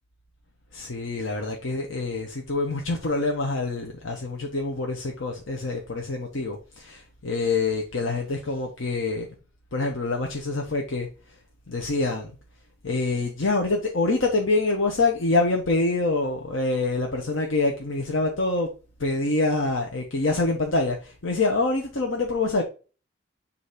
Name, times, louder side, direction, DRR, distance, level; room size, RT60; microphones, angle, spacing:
voice 1, 0.7-9.3 9.7-11.1 11.7-12.3 12.8-18.7 19.0-22.6, left 3 dB, 80° left, 1.0 m, -26 dB
6.9 x 2.8 x 4.9 m
head